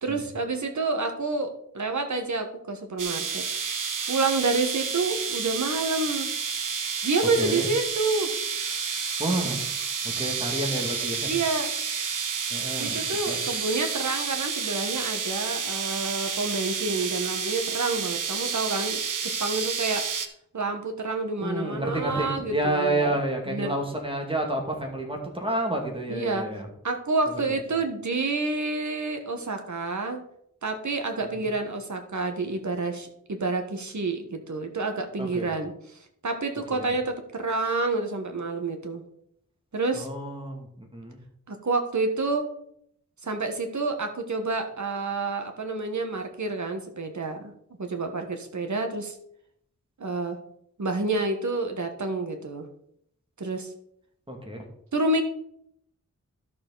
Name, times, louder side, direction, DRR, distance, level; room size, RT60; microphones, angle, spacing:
voice 1, 0.0-3.4 4.1-6.3 7.0-8.3 11.3-11.7 12.8-20.0 20.5-23.2 23.5-23.7 26.1-26.5 26.8-30.2 30.6-36.0 36.2-39.0 39.7-40.1 41.5-42.5 43.2-47.5 47.8-49.2 50.0-50.4 50.8-52.7 53.4-53.7 54.9-55.2, right 3 dB, 65° right, 5 dB, 1.5 m, -28 dB
sound 1, 3.0-20.3, right 6 dB, 85° right, 0.9 m, -30 dB
voice 2, 7.4-7.7 9.2-9.6 10.0-11.3 12.5-13.0 13.3-13.4 21.4-26.7 31.3-31.5 35.2-35.5 36.7-36.9 39.9-41.2 54.3-54.7, right 1 dB, 15° right, 1 dB, 2.5 m, -29 dB
12.0 x 6.7 x 4.1 m, 0.71 s
wide cardioid pair, 95°, 31 cm